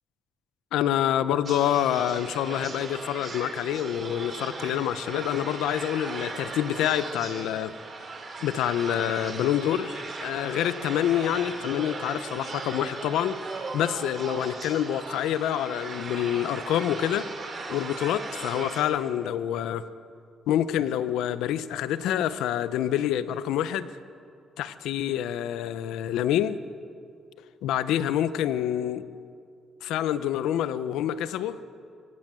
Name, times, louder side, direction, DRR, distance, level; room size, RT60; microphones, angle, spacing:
voice 1, 0.7-7.7 8.4-17.3 17.7-19.8 20.5-23.9 24.6-26.6 27.6-29.0 29.8-31.6, left 11 dB, 90° left, 14 dB, 0.8 m, -27 dB
sound 1, 1.5-18.8, right 3 dB, 40° right, 4.3 m, -38 dB
24.5 x 17.0 x 7.6 m, 2.4 s
cardioid pair, 90°, 0 cm